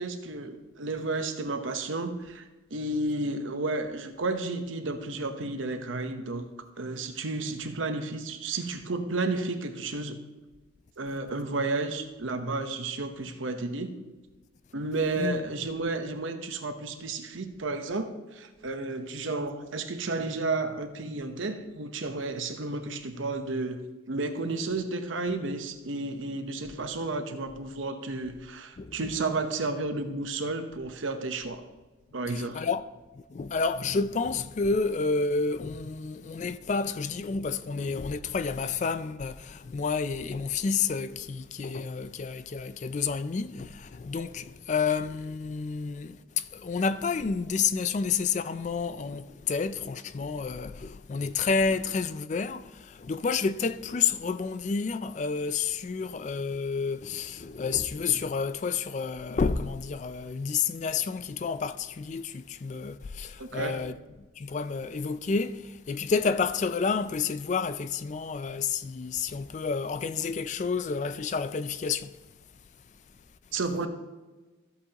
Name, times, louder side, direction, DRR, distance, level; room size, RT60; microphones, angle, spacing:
voice 1, 0.0-2.4 2.7-6.5 6.8-10.2 11.0-13.9 14.7-31.6 32.1-32.6 63.4-63.8 73.5-73.9, right 3 dB, 80° right, 0.9 m, -32 dB
voice 2, 28.8-29.1 32.3-32.9 33.1-63.9 64.4-72.1, left 5 dB, 35° left, 0.3 m, -30 dB
13.5 x 8.0 x 2.9 m
head